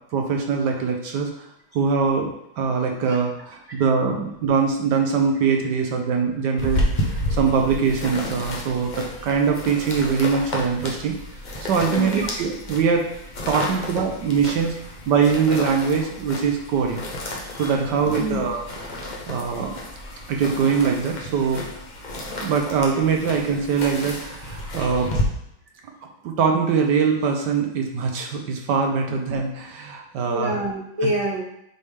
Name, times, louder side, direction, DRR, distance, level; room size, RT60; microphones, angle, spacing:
voice 1, 0.1-1.5 1.7-2.3 2.6-11.2 11.6-13.1 13.5-14.8 15.1-17.0 17.6-19.8 20.3-21.6 22.2-25.1 26.2-30.6, right 6 dB, 70° right, 2 dB, 1.2 m, -22 dB
sound 1, 6.6-25.2, left 1 dB, 50° left, 0.5 m, -31 dB
voice 2, 11.9-12.2 13.7-13.8 17.4-17.7 18.2-18.4 30.3-31.4, right 1 dB, 25° right, -3 dB, 0.7 m, -27 dB
8.3 x 3.5 x 3.3 m, 0.77 s
omnidirectional pair, 2.1 m